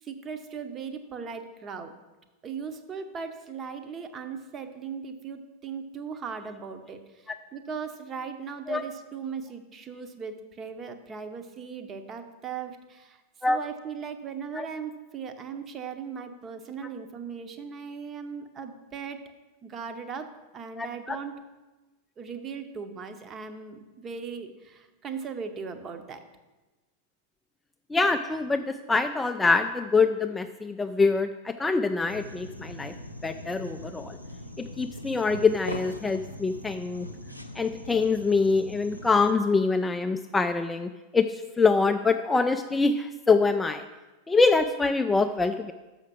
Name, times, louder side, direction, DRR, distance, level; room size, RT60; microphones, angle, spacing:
voice 1, 0.0-1.9 2.4-19.2 19.6-21.4 22.2-26.2, right 6 dB, 25° right, 8 dB, 0.8 m, -38 dB
voice 2, 20.8-21.2 27.9-32.9 33.2-34.2 34.8-37.1 37.6-41.3 41.6-43.9 44.3-45.7, left 4 dB, 10° left, 7 dB, 0.3 m, -24 dB
sound 1, 32.1-39.3, left 1 dB, 90° left, 0.6 m, -41 dB
6.5 x 5.8 x 6.1 m, 1.2 s
figure-of-eight pair, 90°, 0 cm